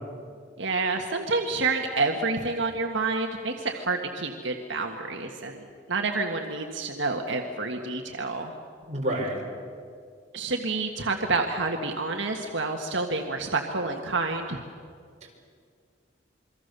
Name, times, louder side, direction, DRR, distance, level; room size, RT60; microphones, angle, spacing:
voice 1, 0.6-8.5 10.3-14.6, right 3 dB, 80° right, 3 dB, 1.7 m, -28 dB
voice 2, 8.9-9.4 15.2-15.3, right 1 dB, 35° right, -1 dB, 5.5 m, -29 dB
27.5 x 24.0 x 6.9 m, 2.2 s
head